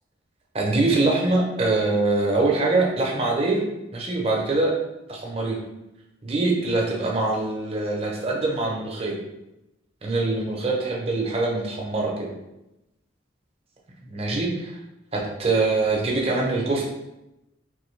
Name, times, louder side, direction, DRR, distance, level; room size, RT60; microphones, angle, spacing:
voice 1, 0.5-3.6 3.9-4.7 5.1-5.6 6.2-9.1 10.0-12.3 14.0-14.8 15.1-16.8, right 2 dB, 30° right, -1 dB, 0.7 m, -23 dB
3.7 x 2.8 x 3.2 m, 0.92 s
head